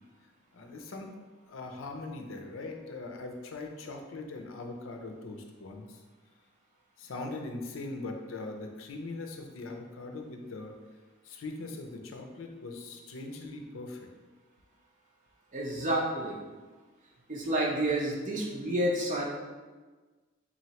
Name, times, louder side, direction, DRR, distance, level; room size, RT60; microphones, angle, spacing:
voice 1, 0.5-1.1 1.5-6.0 7.0-10.7 11.2-14.0, left 2 dB, 75° left, 3 dB, 0.5 m, -41 dB
voice 2, 15.5-16.4 17.3-19.2, right 1 dB, 40° right, -2 dB, 0.6 m, -29 dB
4.0 x 3.1 x 2.8 m, 1.3 s
head